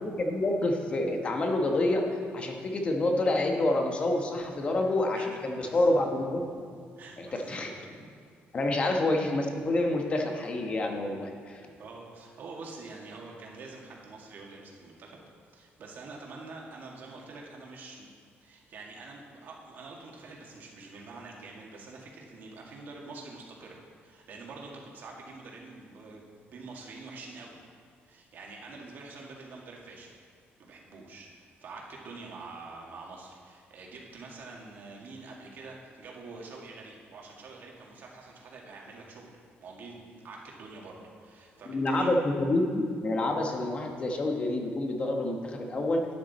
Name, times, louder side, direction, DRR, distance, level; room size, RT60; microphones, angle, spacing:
voice 1, 0.0-2.0 2.3-6.4 7.2-7.7 8.5-11.6 41.7-46.1, left 2 dB, 30° left, 2 dB, 1.1 m, -28 dB
voice 2, 5.1-5.9 7.0-7.7 11.8-15.2 15.5-18.1 18.4-27.6 28.0-30.2 30.6-39.3 39.6-42.1, right 3 dB, 50° right, -2 dB, 1.9 m, -46 dB
11.5 x 9.3 x 4.2 m, 2.2 s
cardioid pair, 180°, 4 cm